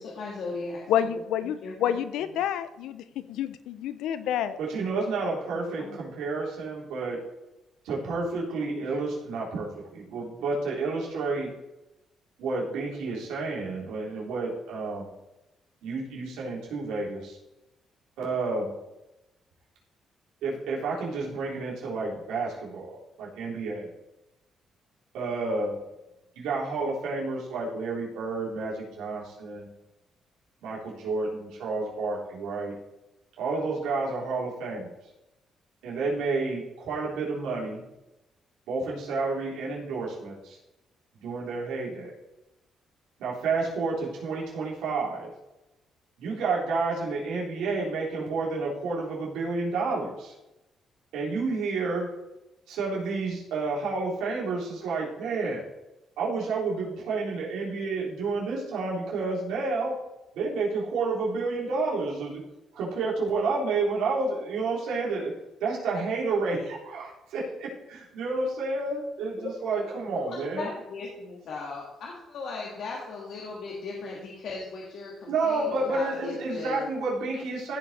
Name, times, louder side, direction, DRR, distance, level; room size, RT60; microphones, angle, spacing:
voice 1, 0.0-1.2 1.6-2.0 5.8-6.0 69.4-69.8 70.2-76.9, left 3 dB, 70° left, -3 dB, 1.9 m, -37 dB
voice 2, 0.9-4.6, left 10 dB, 85° left, 13 dB, 0.6 m, -29 dB
voice 3, 4.6-7.2 7.8-11.5 12.4-15.1 15.8-17.4 18.2-18.7 20.4-23.9 25.1-25.8 26.4-29.7 30.6-32.7 33.4-34.9 35.8-37.8 38.7-40.6 41.2-42.1 43.2-45.3 46.2-50.3 51.1-52.1 52.7-55.6 56.2-60.0 60.4-62.4 62.7-65.3 65.6-70.7 75.3-77.8, right 3 dB, 90° right, -4 dB, 3.6 m, -30 dB
15.0 x 5.2 x 4.3 m, 0.94 s
cardioid pair, 90°, 0 cm